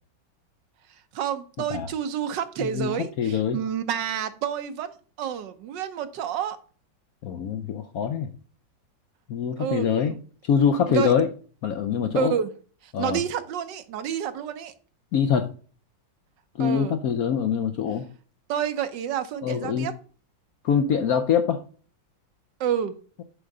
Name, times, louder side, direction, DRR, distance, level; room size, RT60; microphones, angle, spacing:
voice 1, 1.1-6.6 9.6-10.2 10.9-11.1 12.1-12.5 13.0-14.7 16.6-16.9 18.5-19.9 22.6-22.9, right 9 dB, 70° right, 10 dB, 1.4 m, -29 dB
voice 2, 2.6-3.6 7.2-8.3 9.3-11.3 11.6-12.3 12.9-13.2 15.1-15.5 16.6-18.0 19.4-19.9 20.6-21.6, left 7 dB, 65° left, 8 dB, 0.9 m, -24 dB
7.9 x 3.7 x 6.5 m, 0.41 s
omnidirectional pair, 2.1 m